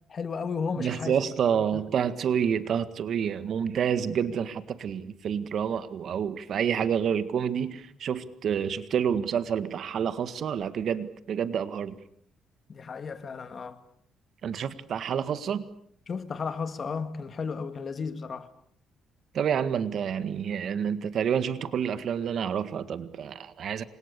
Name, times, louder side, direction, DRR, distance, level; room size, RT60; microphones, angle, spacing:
voice 1, 0.1-1.2 1.5-1.8 12.7-13.8 16.1-18.5, left 5 dB, 40° left, 2.2 m, -34 dB
voice 2, 0.8-12.0 14.4-15.6 19.3-23.8, right 8 dB, 60° right, 1.8 m, -28 dB
30.0 x 25.5 x 6.9 m
cardioid pair, 120°, 0 cm